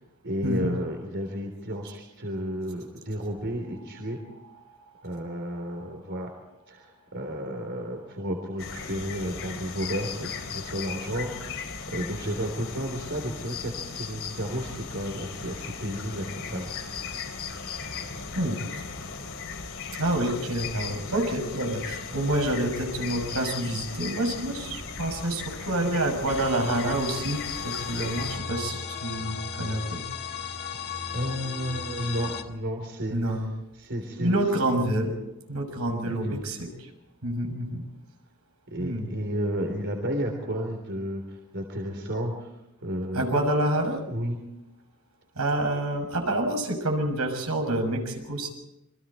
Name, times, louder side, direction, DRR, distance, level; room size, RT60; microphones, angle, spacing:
voice 1, 0.2-4.2 5.0-6.3 6.7-16.7 31.1-33.4 33.7-34.4 36.0-36.4 38.7-42.5 42.8-43.3 44.1-44.4, equal, 55° right, 3 dB, 3.6 m, -32 dB
sound 1, 8.6-28.4, left 5 dB, 65° left, 3.8 m, -37 dB
voice 2, 19.9-27.4 27.6-30.0 33.1-33.5 34.2-35.1 35.5-36.9 37.2-37.8 38.8-39.1 43.1-44.0 45.4-48.5, right 1 dB, 80° right, 3 dB, 6.5 m, -27 dB
sound 2, 26.3-32.4, left 6 dB, 45° left, 2.0 m, -36 dB
28.5 x 24.0 x 4.4 m, 0.91 s
head